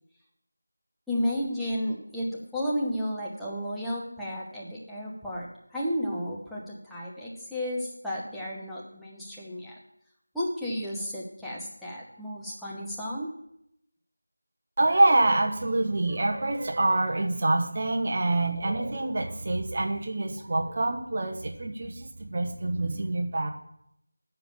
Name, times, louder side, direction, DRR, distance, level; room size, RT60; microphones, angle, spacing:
voice 1, 1.1-9.7 10.3-13.3, equal, ahead, -8 dB, 1.1 m, -33 dB
voice 2, 14.8-23.5, right 2 dB, 35° right, 3 dB, 1.1 m, -26 dB
7.0 x 6.9 x 7.4 m, 0.78 s
figure-of-eight pair, 170°, 0 cm